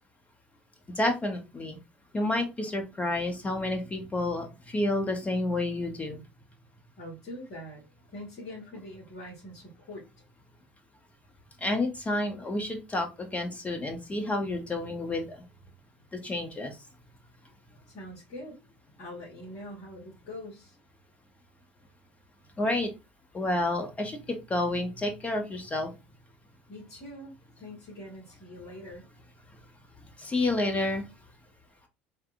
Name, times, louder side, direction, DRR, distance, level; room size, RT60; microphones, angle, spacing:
voice 1, 1.0-1.8 2.1-6.2 11.6-15.4 16.1-16.7 22.6-22.9 23.3-25.9 30.2-31.0, left 2 dB, 25° left, 1.9 m, -30 dB
voice 2, 7.0-10.1 17.9-18.6 19.0-20.8 26.7-29.1, left 1 dB, 60° left, 2.7 m, -43 dB
4.4 x 3.5 x 3.4 m
figure-of-eight pair, 65°, 6 cm